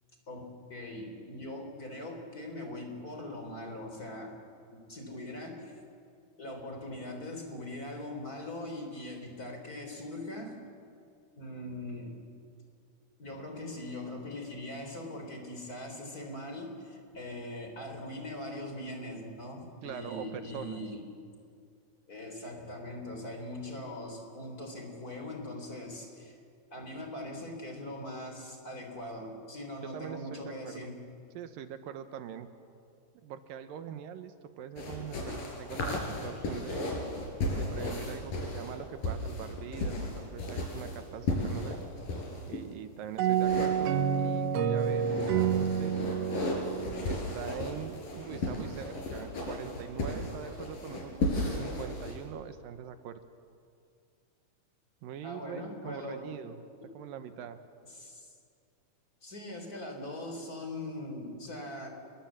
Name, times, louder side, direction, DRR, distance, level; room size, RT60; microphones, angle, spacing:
voice 1, 0.3-4.4 4.7-5.8 6.4-10.5 11.3-12.2 13.2-21.0 22.1-26.4 26.7-31.0 55.2-56.3 57.8-58.3 59.2-61.9, left 1 dB, 25° left, 3 dB, 4.0 m, -41 dB
voice 2, 19.8-20.8 29.9-30.8 31.3-32.5 33.2-36.9 37.6-41.8 42.5-46.0 47.0-53.2 55.0-56.6 56.9-57.6, right 8 dB, 80° right, 9 dB, 2.8 m, -43 dB
sound 1, 34.8-42.6 43.3-44.4 44.8-52.2, left 2 dB, 75° left, 6.2 m, -35 dB
sound 2, 43.2-47.8, right 8 dB, 65° right, 1.7 m, -29 dB
29.0 x 22.0 x 7.5 m, 2.4 s
omnidirectional pair, 3.9 m